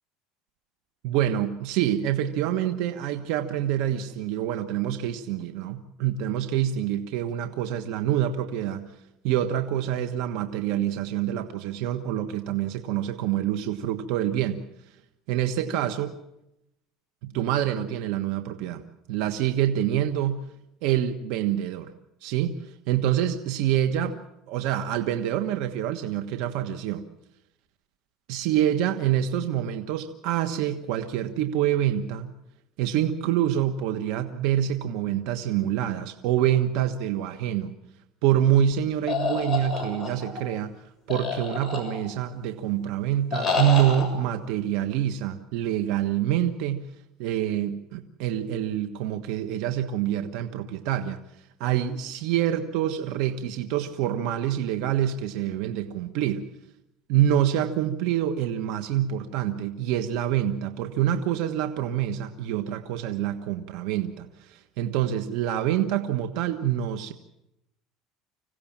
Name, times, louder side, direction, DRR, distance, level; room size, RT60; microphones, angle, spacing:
voice 1, 1.0-8.8 9.2-14.6 15.3-16.2 17.2-18.8 19.1-20.4 20.8-21.9 22.2-24.2 24.5-27.0 28.3-32.3 32.8-37.7 38.2-40.7 41.1-46.9 47.2-56.4 57.1-67.1, right 11 dB, 70° right, 8 dB, 1.4 m, -26 dB
sound 1, 39.1-40.4 41.1-42.2 43.3-44.1, left 4 dB, 15° left, 6.9 m, -28 dB
26.0 x 16.5 x 7.4 m, 0.84 s
cardioid pair, 130°, 0 cm